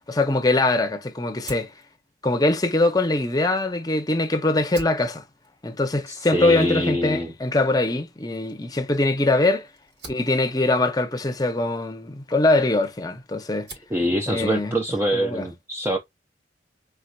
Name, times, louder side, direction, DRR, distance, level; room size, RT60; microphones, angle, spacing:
voice 1, 0.1-1.7 2.2-5.2 5.6-9.7 10.1-13.7 14.3-14.7 15.1-15.5, left 2 dB, 20° left, 0.7 m, -22 dB
Fire, 1.4-4.0 4.4-13.1 13.4-14.0, right 1 dB, 65° right, 3.3 m, -47 dB
voice 2, 6.1-7.3 13.9-16.0, equal, 15° right, 0.5 m, -24 dB
4.6 x 3.5 x 2.4 m
head